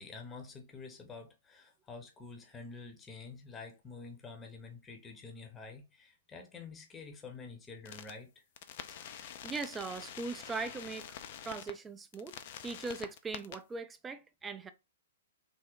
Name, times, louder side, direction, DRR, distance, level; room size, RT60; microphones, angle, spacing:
voice 1, 0.0-8.3, left 4 dB, 15° left, 0.8 m, -48 dB
sound 1, 7.9-8.1 8.6-11.7 12.1-13.6, left 9 dB, 50° left, 0.4 m, -46 dB
voice 2, 9.1-11.2 11.4-12.3 12.6-14.7, right 4 dB, 15° right, 0.4 m, -40 dB
3.5 x 2.1 x 3.7 m
hypercardioid pair, 120°, 0 cm